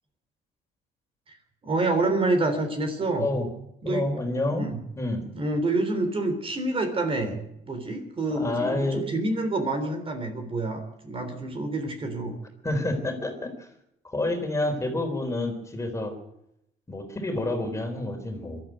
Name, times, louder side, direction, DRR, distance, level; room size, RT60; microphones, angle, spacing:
voice 1, 1.6-3.3 3.8-4.1 4.5-4.8 5.4-12.4, right 2 dB, 35° right, 7 dB, 3.6 m, -27 dB
voice 2, 3.8-4.7 5.0-5.3 8.3-9.0 12.6-13.7 14.0-16.1 16.9-18.6, left 2 dB, 15° left, 5 dB, 4.1 m, -28 dB
22.5 x 13.0 x 9.1 m, 0.82 s
cardioid pair, 110°, 17 cm